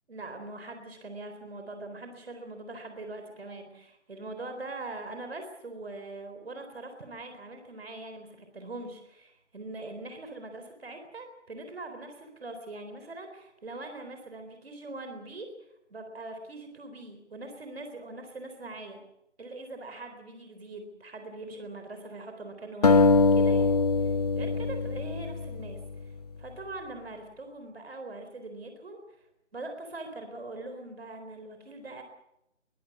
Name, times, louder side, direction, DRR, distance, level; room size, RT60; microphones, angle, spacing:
voice 1, 0.1-15.5 15.9-19.0 19.4-26.1 26.4-29.0 29.5-32.0, right 2 dB, 60° right, 6 dB, 4.0 m, -42 dB
sound 1, 22.8-26.1, left 3 dB, 35° left, 0.9 m, -23 dB
23.0 x 14.0 x 9.5 m, 0.85 s
figure-of-eight pair, 155°, 35 cm